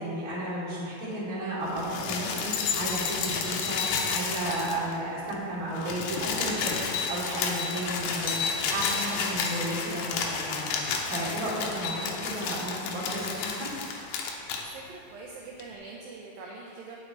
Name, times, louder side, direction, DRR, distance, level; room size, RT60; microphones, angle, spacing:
voice 1, 0.0-10.7 11.1-13.7, right 1 dB, 25° right, -7 dB, 2.5 m, -33 dB
sound 1, 1.7-5.0 5.3-5.4 5.6-14.6 15.6-15.7, left 5 dB, 80° left, 3.0 m, -31 dB
voice 2, 14.7-17.0, right 3 dB, 80° right, -2 dB, 2.2 m, -43 dB
18.0 x 6.6 x 3.9 m, 2.6 s
omnidirectional pair, 5.0 m